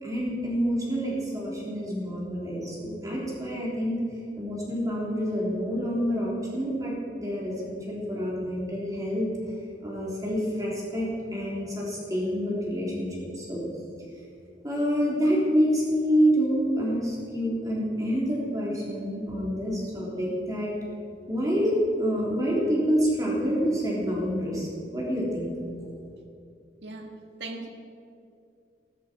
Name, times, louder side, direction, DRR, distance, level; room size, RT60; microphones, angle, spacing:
voice 1, 0.0-4.0 4.4-9.3 9.8-13.1 13.3-13.6 14.6-20.7 21.3-25.5, equal, 20° right, -4 dB, 3.5 m, -27 dB
voice 2, 26.8-27.7, right 3 dB, 80° right, 3 dB, 1.7 m, -39 dB
15.0 x 13.0 x 5.1 m, 2.5 s
head